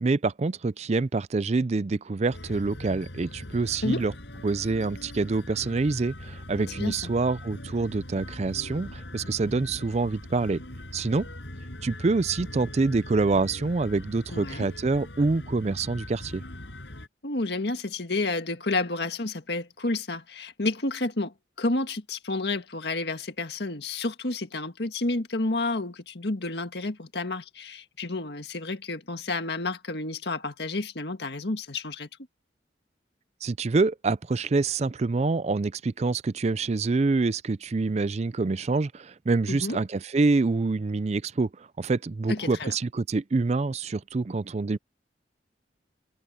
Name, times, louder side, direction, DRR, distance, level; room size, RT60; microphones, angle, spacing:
voice 1, 0.0-4.1 4.4-10.6 10.9-11.3 11.8-16.4 33.4-44.8, right 3 dB, 35° right, 0.4 m, -26 dB
sound 1, 2.3-17.1, left 1 dB, 85° left, 6.2 m, -41 dB
voice 2, 14.3-14.7 17.2-32.1 39.5-39.8 42.3-42.7, left 2 dB, 70° left, 1.8 m, -30 dB
head